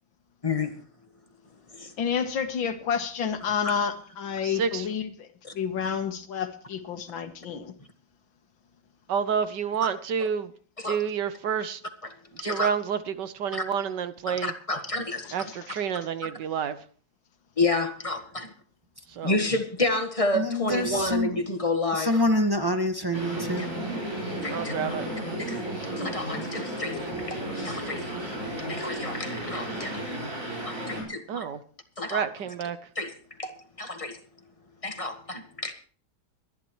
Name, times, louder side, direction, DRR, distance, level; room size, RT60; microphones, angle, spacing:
voice 1, 0.4-0.7 1.7-1.9 3.6-3.8 5.4-5.5 10.8-11.0 12.4-12.7 13.5-13.6 14.3-15.5 17.6-18.5 19.2-22.2 23.6-23.7 24.4-24.7 25.4-25.6 26.0-27.0 27.3-28.0 28.7-30.0 30.6-31.5 32.0-32.2 32.9-33.1 33.4-34.2 34.8-35.7, left 2 dB, 20° left, 1.3 m, -30 dB
voice 2, 2.0-5.3 5.5-7.7 15.1-15.7, left 7 dB, 90° left, 2.1 m, -30 dB
voice 3, 4.4-4.9 9.1-10.5 10.8-11.8 12.4-14.5 15.3-16.8 19.1-19.4 24.5-25.1 31.3-31.6 32.1-32.8, right 7 dB, 70° right, 1.5 m, -29 dB
voice 4, 20.3-21.3 21.9-23.7, left 1 dB, 15° right, 1.3 m, -26 dB
sound 1, 23.1-31.0, right 1 dB, 40° right, 6.1 m, -33 dB
23.0 x 11.0 x 3.1 m
omnidirectional pair, 2.1 m